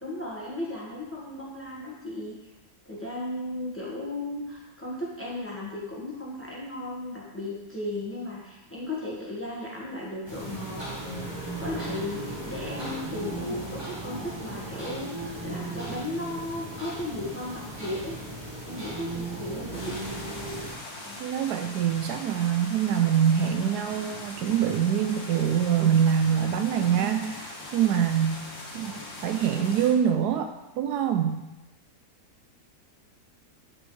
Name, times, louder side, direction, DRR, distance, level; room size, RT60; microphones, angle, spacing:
voice 1, 0.0-2.3 2.8-10.8 11.6-18.2 18.6-19.9, left 1 dB, 10° left, -6 dB, 1.3 m, -35 dB
sound 1, 10.3-20.7, right 1 dB, 15° right, 1.4 m, -36 dB
sound 2, 19.7-29.9, left 2 dB, 70° left, 1.8 m, -41 dB
voice 2, 21.2-28.4 28.7-29.0 29.2-31.4, right 8 dB, 85° right, 7 dB, 1.2 m, -24 dB
7.7 x 5.4 x 3.2 m, 1.0 s
omnidirectional pair, 1.7 m